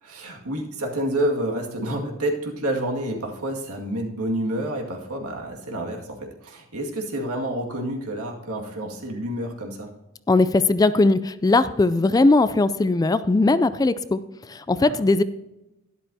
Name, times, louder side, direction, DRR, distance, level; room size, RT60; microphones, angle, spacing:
voice 1, 0.0-9.9 14.8-15.0, right 1 dB, 85° right, 1 dB, 2.1 m, -29 dB
voice 2, 10.3-14.2 14.5-15.2, left 2 dB, 15° left, 14 dB, 0.3 m, -19 dB
12.0 x 11.0 x 2.8 m, 0.95 s
head